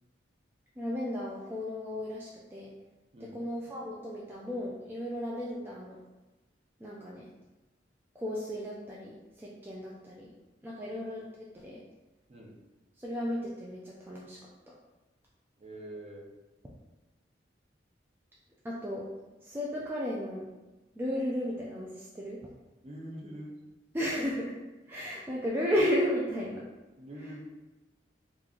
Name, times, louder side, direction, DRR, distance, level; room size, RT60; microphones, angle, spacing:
voice 1, 0.8-2.7 3.3-6.0 6.8-7.2 8.2-10.3 10.6-11.3 11.5-11.8 13.0-14.4 14.7-14.8 18.6-19.1 19.4-20.5 21.0-22.4 23.9-24.5 24.9-26.7, equal, 10° right, -5 dB, 0.3 m, -34 dB
voice 2, 15.6-16.2 22.8-23.5 27.0-27.4, right 1 dB, 35° right, -2 dB, 0.7 m, -44 dB
3.0 x 2.5 x 3.7 m, 1.1 s
head